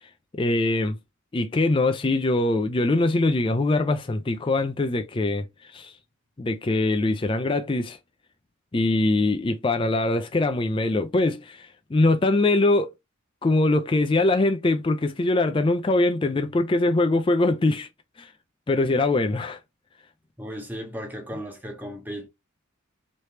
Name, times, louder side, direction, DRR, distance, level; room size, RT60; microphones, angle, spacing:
voice 1, 0.4-1.0 1.3-5.5 5.7-5.9 6.4-8.0 8.7-12.9 13.4-17.9 18.2-18.3 18.7-19.6, left 2 dB, 25° left, 0.3 m, -22 dB
voice 2, 20.4-22.3, equal, 10° right, 0.8 m, -35 dB
3.3 x 3.0 x 2.7 m
head